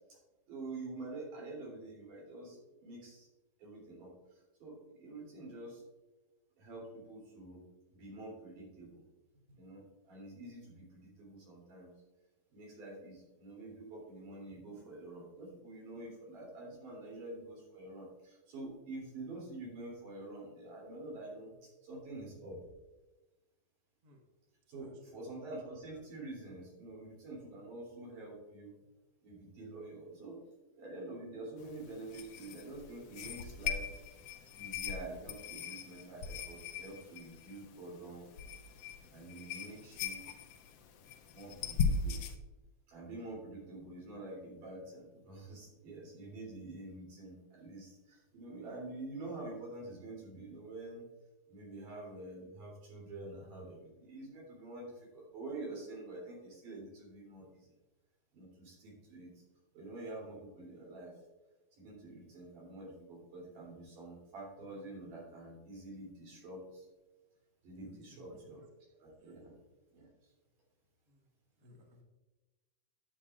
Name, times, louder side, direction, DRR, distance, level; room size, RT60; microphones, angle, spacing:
voice 1, 0.5-3.3 3.6-5.8 6.6-7.6 7.9-9.0 9.5-11.9 12.5-22.6 24.7-28.8 29.2-30.4 30.8-33.9 34.6-38.2 39.1-40.3 41.3-42.2 42.9-51.1 51.5-57.7 58.3-59.3 59.7-61.1 61.8-66.9 67.6-68.7 69.0-69.6 69.9-70.3, right 2 dB, 80° right, -3 dB, 4.9 m, -47 dB
voice 2, 24.8-25.2 67.8-68.6 69.2-69.4 71.1-71.3 71.6-72.0, left 1 dB, 50° right, 1 dB, 1.2 m, -61 dB
sound 1, 31.6-42.4, left 5 dB, 85° left, 1.4 m, -40 dB
11.5 x 8.2 x 2.5 m, 1.1 s
omnidirectional pair, 3.7 m